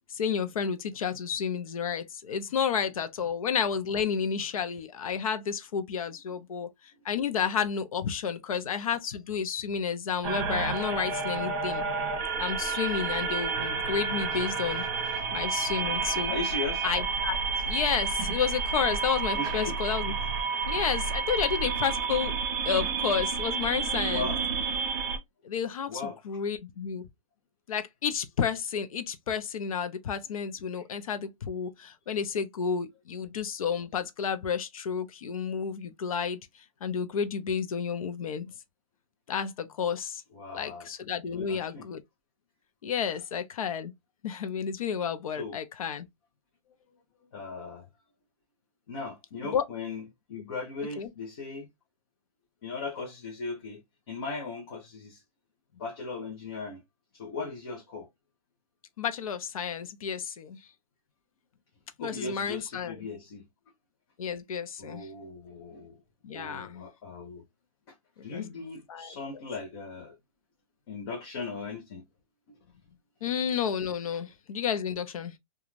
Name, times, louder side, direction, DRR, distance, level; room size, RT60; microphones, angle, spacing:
voice 1, 0.1-6.7 7.0-11.8 12.4-14.9 15.3-16.3 16.8-17.4 17.6-20.1 20.7-22.3 22.6-24.3 25.4-27.1 27.7-38.5 39.3-40.2 40.5-42.0 42.8-43.9 44.2-46.1 49.4-49.6 51.0-51.1 59.0-60.6 62.0-63.1 64.2-65.1 66.2-66.8 68.2-68.4 68.9-69.1 73.2-75.3, left 7 dB, 75° left, 0.6 m, -31 dB
sound 1, 10.2-25.2, right 5 dB, 30° right, 1.0 m, -30 dB
voice 2, 16.3-16.8 19.3-19.8 24.1-24.4 25.9-26.2 30.7-30.8 40.3-40.9 41.3-41.9 45.4-45.6 47.3-47.9 48.9-51.7 52.6-53.8 54.1-55.2 55.7-56.8 57.1-58.1 62.0-63.4 64.8-66.0 66.3-67.4 67.9-68.0 68.2-70.2 70.9-72.0 73.2-73.3, left 4 dB, 40° left, 0.8 m, -38 dB
2.5 x 2.3 x 3.0 m
hypercardioid pair, 165°, 18 cm